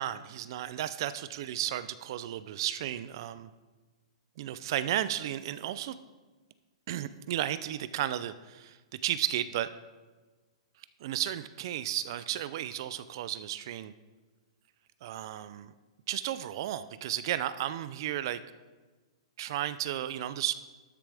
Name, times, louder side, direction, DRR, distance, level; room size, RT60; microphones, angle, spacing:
voice 1, 0.0-3.5 4.4-6.0 6.9-9.7 11.0-13.9 15.0-15.7 16.1-18.4 19.4-20.5, right 12 dB, 40° right, 14 dB, 0.3 m, -33 dB
12.5 x 6.9 x 3.4 m, 1.3 s
hypercardioid pair, 170°, 3 cm